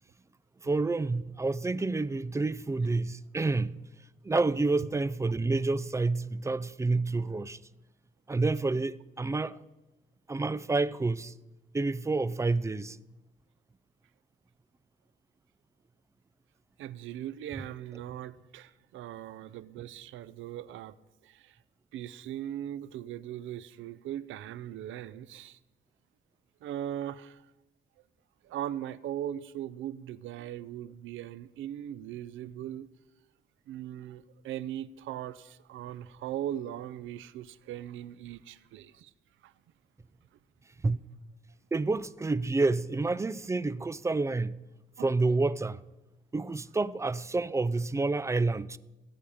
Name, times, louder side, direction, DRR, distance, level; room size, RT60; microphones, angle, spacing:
voice 1, 0.6-3.8 4.2-7.6 8.3-9.6 10.3-11.3 11.7-13.0 40.8-41.0 41.7-44.6 45.0-45.8 46.3-48.8, right 3 dB, 15° right, 0.4 m, -29 dB
voice 2, 16.8-20.9 21.2-21.6 21.9-25.6 26.6-27.5 28.4-32.9 33.7-39.1 39.4-39.5 45.0-45.1, right 11 dB, 90° right, 0.5 m, -39 dB
16.0 x 8.6 x 4.9 m
cardioid pair, 95°, 20 cm